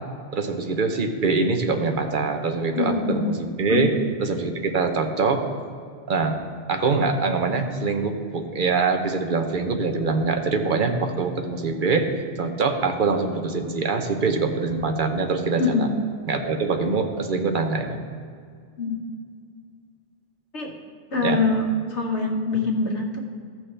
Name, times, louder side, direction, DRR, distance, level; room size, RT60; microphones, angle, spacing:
voice 1, 0.3-3.9 4.2-5.5 6.1-6.4 6.7-12.1 12.4-15.9 16.3-18.0 21.2-21.4, right 4 dB, 50° right, 5 dB, 0.8 m, -24 dB
voice 2, 2.8-3.2 3.7-3.9 15.6-15.9 18.8-19.0 20.5-20.7 21.1-23.2, left 3 dB, 70° left, 0 dB, 1.5 m, -24 dB
14.0 x 6.1 x 3.3 m, 2.2 s
omnidirectional pair, 1.2 m